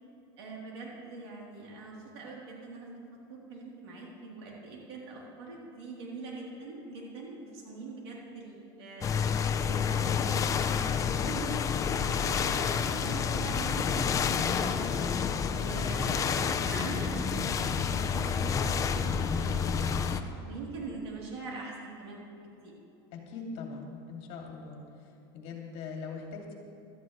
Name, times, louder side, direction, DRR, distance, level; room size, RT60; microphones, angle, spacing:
voice 1, 0.4-2.9 3.3-9.1 9.6-11.5 11.8-14.9 15.5-19.6 20.2-22.2 22.6-22.7, right 3 dB, 85° right, -3 dB, 3.3 m, -43 dB
sound 1, 9.0-20.2, left 6 dB, 25° left, 0.6 m, -29 dB
voice 2, 23.1-24.8 25.3-26.5, left 4 dB, 50° left, 0 dB, 2.4 m, -41 dB
16.5 x 12.5 x 3.2 m, 2.6 s
supercardioid pair, 135°, 13 cm